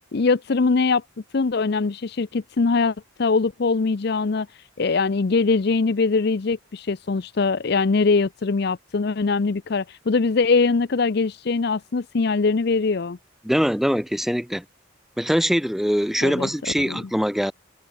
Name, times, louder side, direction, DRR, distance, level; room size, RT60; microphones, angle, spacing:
voice 1, 0.1-1.0 1.3-4.5 4.8-13.2 16.2-16.5 16.8-17.0, left 4 dB, 50° left, 0.5 m, -22 dB
voice 2, 13.4-14.6 15.2-17.5, equal, ahead, 1.2 m, -22 dB
head